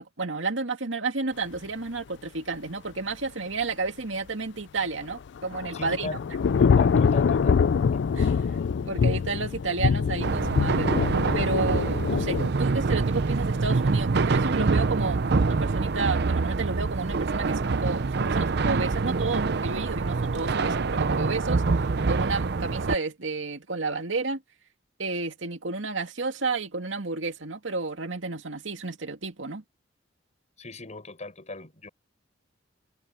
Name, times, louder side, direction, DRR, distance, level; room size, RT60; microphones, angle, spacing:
voice 1, 0.0-6.1 8.1-8.4 8.8-10.9 11.3-21.6 22.1-24.4 25.0-29.6, right 3 dB, 80° right, 2.3 m, -31 dB
Thunder / Rain, 5.1-12.5, left 6 dB, 65° left, 0.4 m, -24 dB
voice 2, 5.7-6.2 6.6-7.6 30.6-31.9, left 2 dB, 40° left, 5.3 m, -38 dB
sound 1, 10.2-23.0, right 4 dB, 60° right, 0.6 m, -25 dB
head